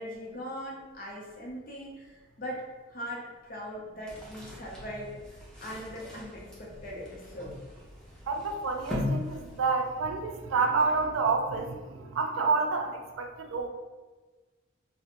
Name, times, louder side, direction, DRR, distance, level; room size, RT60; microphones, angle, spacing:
voice 1, 0.0-2.6 2.9-5.2 5.6-7.6, equal, 45° left, -3 dB, 0.6 m, -40 dB
sound 1, 4.1-10.3, left 2 dB, 5° left, 0.5 m, -39 dB
voice 2, 8.3-13.7, right 4 dB, 85° right, 4 dB, 0.3 m, -29 dB
2.4 x 2.1 x 2.9 m, 1.3 s
head